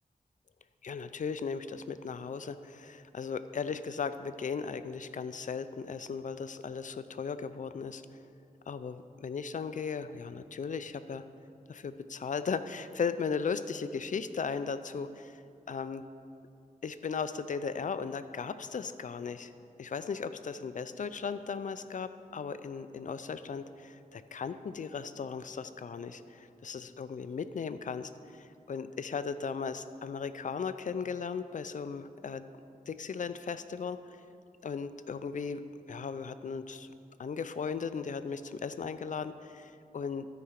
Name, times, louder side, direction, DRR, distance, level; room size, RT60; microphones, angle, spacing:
voice 1, 0.8-8.0 8.7-11.2 11.7-15.4 15.7-16.0 16.8-19.5 19.8-32.4 32.9-34.2 34.6-35.6 35.9-36.9 37.2-40.3, left 5 dB, 60° left, 12 dB, 0.4 m, -37 dB
13.0 x 4.9 x 5.8 m, 2.5 s
wide cardioid pair, 105°, 15 cm